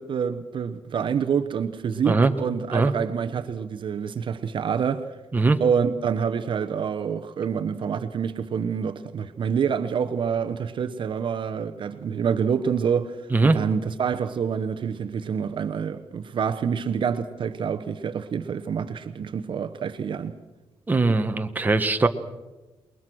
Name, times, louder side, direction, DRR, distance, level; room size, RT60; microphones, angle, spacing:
voice 1, 0.0-5.1 5.6-13.2 13.4-20.3, right 7 dB, 45° right, 0.9 m, -27 dB
voice 2, 20.9-22.1, right 3 dB, 15° right, 1.2 m, -20 dB
28.0 x 21.5 x 6.2 m
cardioid pair, 140°, 11 cm